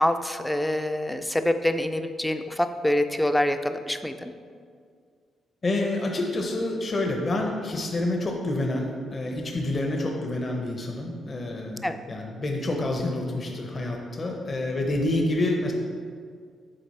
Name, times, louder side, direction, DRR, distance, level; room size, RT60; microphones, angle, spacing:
voice 1, 0.0-4.3 11.8-12.0, left 1 dB, 5° left, 9 dB, 0.3 m, -25 dB
voice 2, 5.6-15.7, left 2 dB, 30° left, 1 dB, 0.7 m, -28 dB
7.8 x 3.9 x 4.1 m, 2.1 s
cardioid pair, 120°, 0 cm